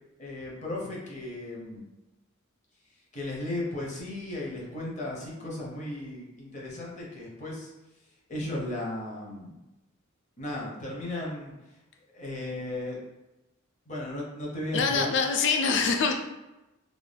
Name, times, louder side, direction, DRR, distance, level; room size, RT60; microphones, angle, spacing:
voice 1, 0.2-1.8 3.1-7.7 8.3-9.6 10.4-11.5 12.1-13.0 13.9-15.1, left 1 dB, 35° left, -3 dB, 0.7 m, -35 dB
voice 2, 14.7-16.1, left 5 dB, 60° left, 4 dB, 0.3 m, -24 dB
2.5 x 2.2 x 3.3 m, 1.0 s
head